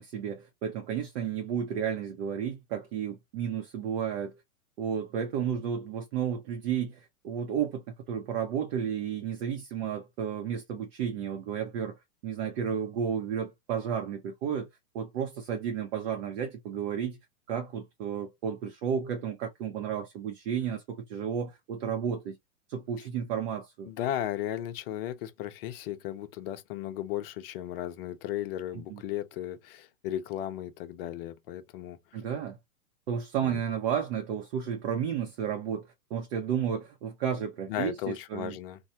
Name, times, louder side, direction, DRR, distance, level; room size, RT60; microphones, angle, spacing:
voice 1, 0.0-4.4 4.8-12.0 12.2-14.7 14.9-17.2 17.5-22.4 22.7-23.9 28.9-29.0 32.1-32.6 33.1-38.6, right 8 dB, 45° right, 0.7 m, -32 dB
voice 2, 23.9-32.0 33.4-33.6 37.7-38.8, left 12 dB, 40° left, 0.6 m, -35 dB
3.1 x 2.2 x 2.7 m
hypercardioid pair, 115°, 42 cm